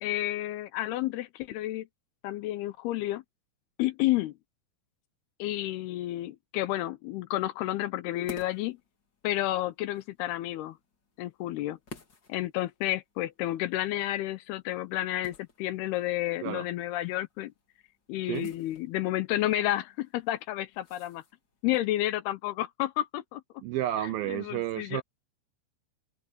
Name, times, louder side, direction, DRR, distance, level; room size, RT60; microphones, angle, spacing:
voice 1, 0.0-1.9 2.2-3.2 3.8-4.3 5.4-8.8 9.2-10.8 11.2-11.8 12.3-17.5 18.1-21.2 21.6-23.4 24.3-25.0, left 15 dB, 80° left, 2.5 m, -31 dB
sound 1, 8.1-21.7, left 4 dB, 30° left, 2.5 m, -53 dB
voice 2, 23.6-25.0, right 13 dB, 80° right, 2.2 m, -32 dB
open air
omnidirectional pair, 4.9 m